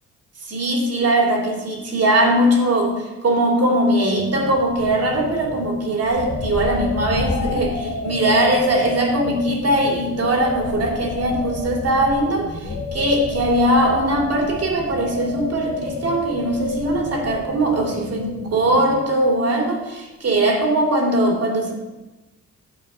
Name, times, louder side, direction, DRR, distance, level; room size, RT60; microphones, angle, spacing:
voice 1, 0.4-21.7, right 1 dB, 55° right, 1 dB, 2.9 m, -20 dB
sound 1, 4.2-19.4, left 3 dB, 45° left, 1.6 m, -30 dB
11.0 x 4.7 x 7.9 m, 1.1 s
cardioid pair, 90°, 30 cm